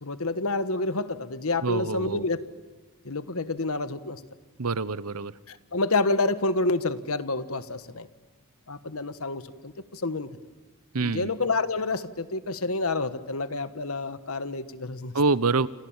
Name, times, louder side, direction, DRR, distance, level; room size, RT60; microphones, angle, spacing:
voice 1, 0.0-2.4 3.0-4.2 5.5-8.1 8.7-10.3 11.0-15.1, left 3 dB, 75° left, 12 dB, 1.5 m, -28 dB
voice 2, 1.6-2.2 4.6-5.3 10.9-11.3 15.1-15.7, right 4 dB, 90° right, 17 dB, 0.9 m, -26 dB
30.0 x 27.0 x 7.4 m, 1.2 s
head